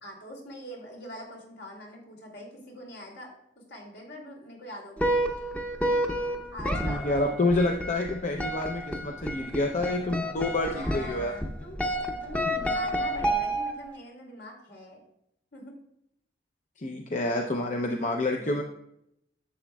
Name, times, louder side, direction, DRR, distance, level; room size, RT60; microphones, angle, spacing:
voice 1, 0.0-3.3 3.7-5.2 5.8-6.0 6.5-7.3 10.6-11.8 12.1-15.0 15.5-15.7 17.3-17.4 18.4-18.6, equal, 75° left, -1 dB, 2.8 m, -43 dB
sound 1, 5.0-14.0, right 1 dB, 10° left, 0.7 m, -30 dB
voice 2, 6.8-11.3 16.8-18.6, left 2 dB, 45° left, 2 dB, 0.6 m, -28 dB
11.5 x 7.6 x 2.3 m, 0.78 s
head